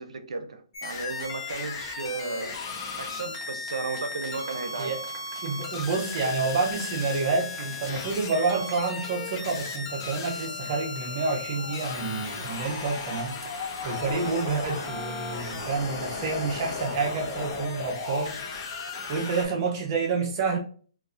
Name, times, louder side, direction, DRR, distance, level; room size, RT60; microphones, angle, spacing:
voice 1, 0.0-2.5 3.0-4.9, right 4 dB, 80° right, 0.6 m, -34 dB
sound 1, 0.7-19.5, left 4 dB, 45° left, 1.0 m, -36 dB
sound 2, 2.6-12.6, right 2 dB, 15° right, 1.0 m, -49 dB
voice 2, 5.4-18.4 19.1-20.6, right 4 dB, 40° right, 0.6 m, -29 dB
sound 3, 11.6-19.8, left 5 dB, 80° left, 0.4 m, -42 dB
3.9 x 2.4 x 2.5 m
hypercardioid pair, 150°, 3 cm